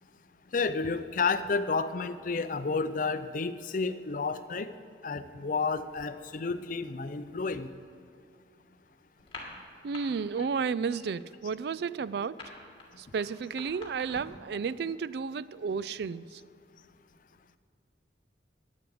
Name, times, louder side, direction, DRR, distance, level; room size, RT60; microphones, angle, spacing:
voice 1, 0.5-4.7 5.0-7.7, left 4 dB, 45° left, 12 dB, 0.5 m, -31 dB
sound 1, 9.2-10.0 10.3-10.6 10.9-14.5, left 3 dB, 30° left, 2.5 m, -46 dB
voice 2, 9.8-12.4 13.0-16.4, right 5 dB, 60° right, 18 dB, 0.3 m, -32 dB
12.0 x 9.8 x 7.8 m, 2.4 s
head